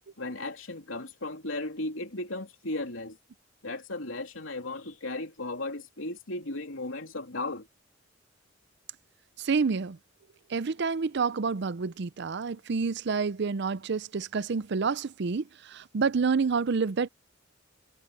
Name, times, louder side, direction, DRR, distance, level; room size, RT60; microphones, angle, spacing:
voice 1, 0.2-3.2 3.6-7.6, left 2 dB, 85° left, 3.1 m, -35 dB
voice 2, 9.4-10.0 10.5-17.1, right 5 dB, 60° right, 0.5 m, -28 dB
head